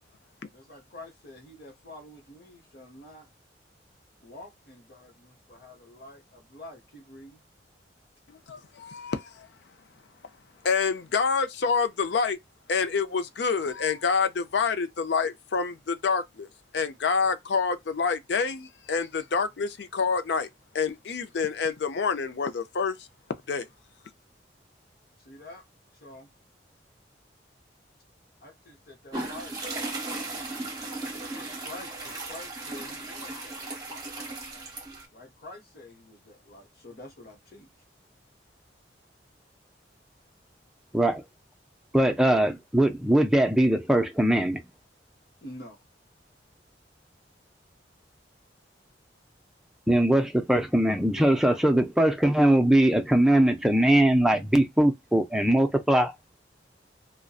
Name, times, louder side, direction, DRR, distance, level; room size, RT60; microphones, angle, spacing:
voice 1, 0.5-3.3 4.2-7.4 25.2-25.6 26.0-26.3 28.4-29.5 31.3-33.8 35.1-37.7 45.4-45.8 51.1-51.2, left 1 dB, 55° left, 0.9 m, -47 dB
voice 2, 8.3-9.5 10.6-12.4 12.7-16.5 16.7-20.5 20.7-23.1 23.5-23.7, left 5 dB, 75° left, 0.5 m, -27 dB
sound 1, 29.1-35.0, right 2 dB, 20° right, 1.0 m, -36 dB
voice 3, 41.9-44.6 49.9-56.1, right 1 dB, 5° right, 0.4 m, -21 dB
2.5 x 2.1 x 2.3 m
head